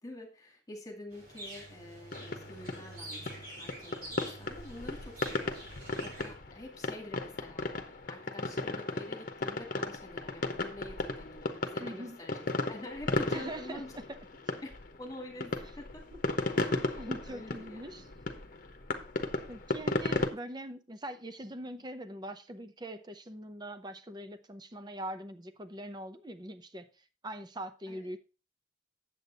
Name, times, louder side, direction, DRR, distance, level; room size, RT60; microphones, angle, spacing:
voice 1, 0.0-13.9 14.6-14.7 15.0-16.0 16.6-18.0 27.9-28.1, left 1 dB, 20° left, 2.2 m, -47 dB
sound 1, 1.1-6.3, right 2 dB, 50° right, 3.4 m, -47 dB
sound 2, 2.1-20.3, left 2 dB, 45° left, 1.0 m, -35 dB
voice 2, 11.8-12.2 13.3-13.8 14.1-14.2 17.0-18.0 19.5-26.9 27.2-28.2, right 1 dB, 25° right, 0.7 m, -42 dB
8.6 x 7.7 x 4.0 m
head